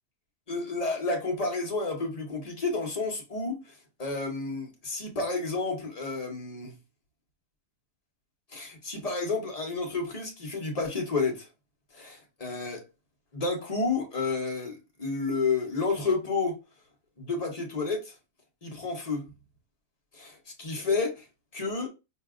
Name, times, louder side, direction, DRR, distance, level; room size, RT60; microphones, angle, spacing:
voice 1, 0.5-3.6 4.0-6.7 8.5-11.5 11.9-12.8 13.3-16.6 17.2-18.1 18.6-19.2 20.1-21.2 21.5-21.9, left 3 dB, 30° left, 0.8 m, -30 dB
4.6 x 2.8 x 2.4 m
omnidirectional pair, 1.6 m